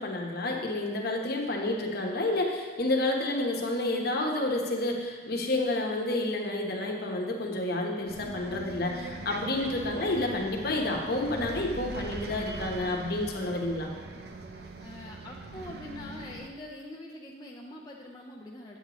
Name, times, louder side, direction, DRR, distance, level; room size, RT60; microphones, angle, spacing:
voice 1, 0.0-13.9, left 2 dB, 55° left, 1 dB, 1.0 m, -30 dB
Bus, 8.1-16.5, right 3 dB, 55° right, 0.6 m, -41 dB
voice 2, 14.8-18.8, left 1 dB, 20° left, -3 dB, 0.5 m, -44 dB
8.4 x 8.0 x 3.0 m, 1.5 s
head